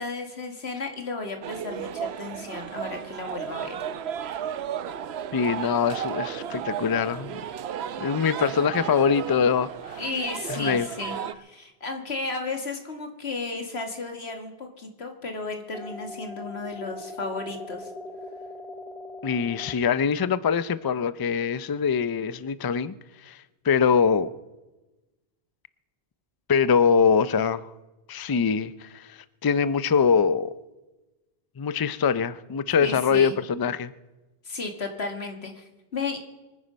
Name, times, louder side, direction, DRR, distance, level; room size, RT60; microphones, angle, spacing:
voice 1, 0.0-3.8 10.0-17.9 32.8-33.3 34.4-36.2, left 3 dB, 85° left, 4 dB, 2.3 m, -34 dB
sound 1, 1.4-11.3, right 9 dB, 85° right, 0.9 m, -34 dB
voice 2, 5.3-7.4 8.0-10.0 10.5-10.9 19.2-22.9 23.2-24.3 26.5-27.7 28.1-30.5 31.6-33.9, left 6 dB, 35° left, 16 dB, 0.4 m, -23 dB
sound 2, 15.7-19.7, left 2 dB, ahead, 1.4 m, -40 dB
24.0 x 9.8 x 5.2 m, 1.1 s
omnidirectional pair, 1.1 m